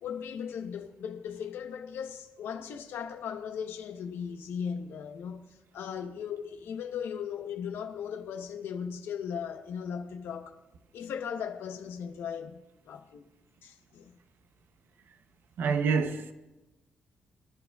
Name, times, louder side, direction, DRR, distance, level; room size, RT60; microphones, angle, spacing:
voice 1, 0.0-10.6 10.9-13.3 13.6-14.1, left 7 dB, 90° left, 1.0 m, -37 dB
voice 2, 15.6-16.3, right 5 dB, 70° right, 0.8 m, -27 dB
22.0 x 11.5 x 2.4 m
cardioid pair, 130°, 4 cm